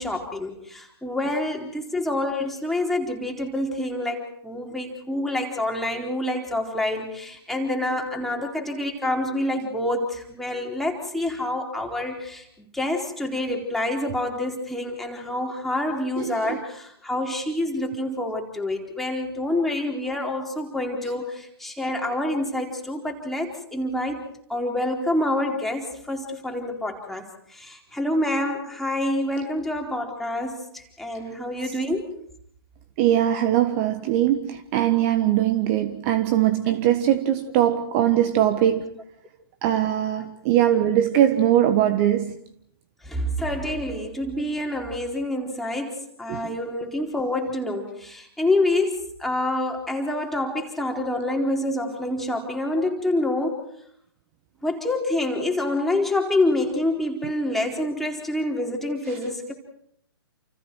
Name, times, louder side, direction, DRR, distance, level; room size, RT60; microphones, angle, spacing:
voice 1, 0.0-24.2 24.5-32.1 43.0-45.9 46.2-53.6 54.6-59.5, left 1 dB, ahead, 4.2 m, -27 dB
voice 2, 16.2-16.6 33.0-39.0 39.6-42.3 46.3-46.6, right 11 dB, 35° right, 1.5 m, -21 dB
29.5 x 29.0 x 4.8 m
figure-of-eight pair, 125°, 13 cm